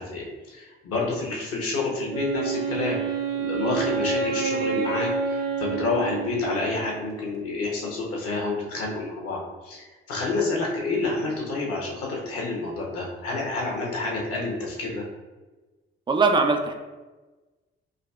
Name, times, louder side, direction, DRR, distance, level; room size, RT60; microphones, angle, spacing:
voice 1, 0.0-3.0 3.3-15.0, left 3 dB, 50° left, -3 dB, 1.1 m, -29 dB
Wind instrument woodwind instrument, 2.1-6.9, right 5 dB, 75° right, 0.6 m, -28 dB
voice 2, 16.1-16.7, right 4 dB, 15° right, 5 dB, 0.4 m, -20 dB
3.8 x 2.7 x 2.3 m, 1.2 s
figure-of-eight pair, 45°, 30 cm